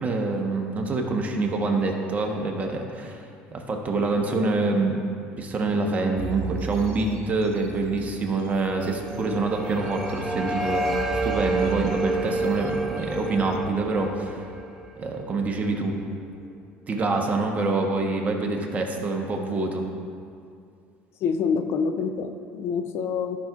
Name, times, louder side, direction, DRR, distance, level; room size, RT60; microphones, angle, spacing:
voice 1, 0.0-5.0 5.4-10.9 11.2-14.4 15.0-16.0 16.9-19.8, right 3 dB, 30° right, 1 dB, 1.2 m, -26 dB
sound 1, 6.2-13.6, right 5 dB, 65° right, 0.6 m, -38 dB
sound 2, 8.7-15.7, right 2 dB, 5° right, 0.8 m, -30 dB
voice 2, 21.2-23.4, left 5 dB, 60° left, 8 dB, 0.5 m, -26 dB
13.0 x 5.9 x 2.5 m, 2.4 s
supercardioid pair, 90°, 5 cm